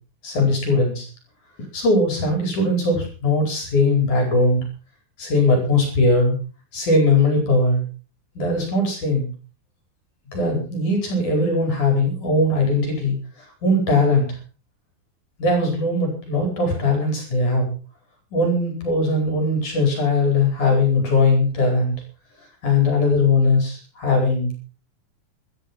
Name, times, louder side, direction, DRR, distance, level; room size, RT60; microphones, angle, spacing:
voice 1, 0.2-1.1 1.7-4.6 5.2-6.4 6.7-7.8 8.4-9.3 10.3-14.4 15.4-17.7 18.3-21.9 22.6-24.6, left 2 dB, 40° left, 4 dB, 5.7 m, -20 dB
14.0 x 13.5 x 5.5 m, 0.36 s
omnidirectional pair, 5.3 m